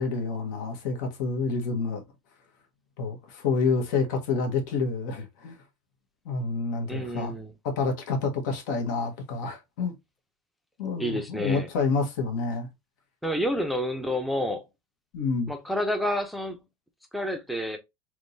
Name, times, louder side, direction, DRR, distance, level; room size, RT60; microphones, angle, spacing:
voice 1, 0.0-2.0 3.0-5.6 6.2-7.3 7.6-9.9 10.8-12.7 15.1-15.5, left 4 dB, 75° left, 1.3 m, -28 dB
voice 2, 6.9-7.5 11.0-11.7 13.2-14.6 15.5-16.6 17.1-17.8, equal, ahead, 0.5 m, -29 dB
3.6 x 3.0 x 2.6 m
supercardioid pair, 155°, 10 cm